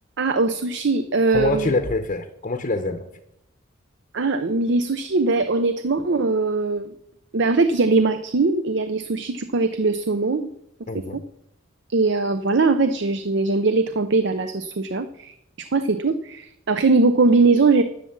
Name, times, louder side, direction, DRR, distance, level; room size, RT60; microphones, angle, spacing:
voice 1, 0.2-1.7 4.1-6.9 7.3-10.5 10.9-11.2 11.9-17.8, right 3 dB, 55° right, 10 dB, 0.6 m, -21 dB
voice 2, 1.3-3.1 10.9-11.2, left 2 dB, 35° left, 6 dB, 0.8 m, -25 dB
11.0 x 7.1 x 7.2 m, 0.81 s
head